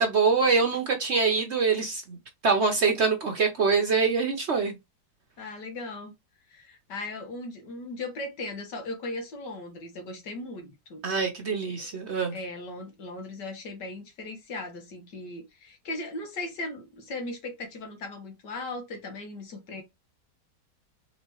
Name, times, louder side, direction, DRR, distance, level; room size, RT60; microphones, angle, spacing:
voice 1, 0.0-2.2 2.4-4.7 11.0-12.4, right 4 dB, 55° right, 0.8 m, -24 dB
voice 2, 5.4-6.1 6.5-11.0 11.6-11.9 12.3-19.8, left 2 dB, 80° left, 2.0 m, -38 dB
4.2 x 3.7 x 3.0 m
omnidirectional pair, 1.8 m